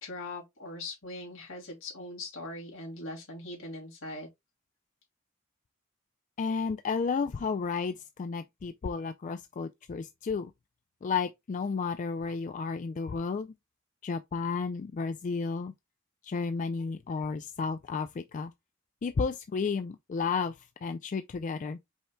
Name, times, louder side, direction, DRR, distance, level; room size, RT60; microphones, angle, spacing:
voice 1, 0.0-4.3, left 2 dB, 70° left, 2.6 m, -41 dB
voice 2, 6.4-10.5 11.0-13.5 14.0-15.7 16.2-18.5 19.0-20.5 20.8-21.8, left 5 dB, 40° left, 0.3 m, -32 dB
5.4 x 4.4 x 2.2 m
head